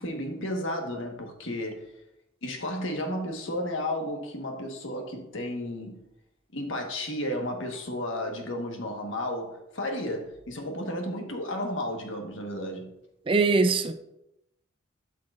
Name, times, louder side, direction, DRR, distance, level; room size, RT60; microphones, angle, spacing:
voice 1, 0.0-1.9 2.4-6.0 6.5-12.9, left 1 dB, 75° left, 1.4 m, -33 dB
voice 2, 13.3-13.9, right 3 dB, 25° right, 0.4 m, -22 dB
12.5 x 5.8 x 2.5 m
head